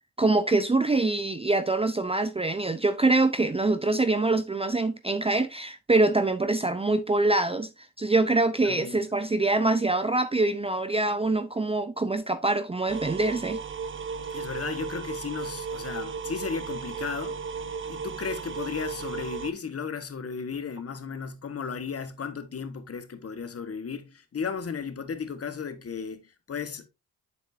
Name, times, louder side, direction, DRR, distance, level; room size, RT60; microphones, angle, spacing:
voice 1, 0.2-7.7 8.0-13.6, right 2 dB, 15° right, 0.6 m, -24 dB
voice 2, 8.6-9.0 14.3-17.4 17.8-26.9, left 6 dB, 40° left, 1.5 m, -35 dB
sound 1, 12.9-19.5, right 5 dB, 30° right, 0.9 m, -35 dB
7.7 x 6.9 x 2.6 m
supercardioid pair, 60°, 37 cm